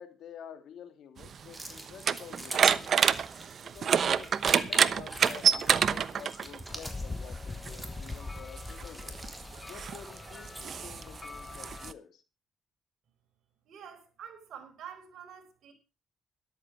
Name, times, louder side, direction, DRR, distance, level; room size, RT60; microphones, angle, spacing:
voice 1, 0.0-3.0 3.6-9.2 9.7-12.2, left 8 dB, 75° left, 8 dB, 2.7 m, -49 dB
sound 1, 1.2-6.6 7.7-7.8 8.6-11.9, right 7 dB, 55° right, 0.9 m, -27 dB
sound 2, 1.5-10.9, right 1 dB, 10° right, 3.7 m, -45 dB
sound 3, 6.7-11.9, left 3 dB, 20° left, 0.9 m, -42 dB
voice 2, 13.7-15.7, right 8 dB, 70° right, 5 dB, 4.4 m, -47 dB
13.5 x 12.0 x 4.8 m, 0.31 s
cardioid pair, 90°, 0 cm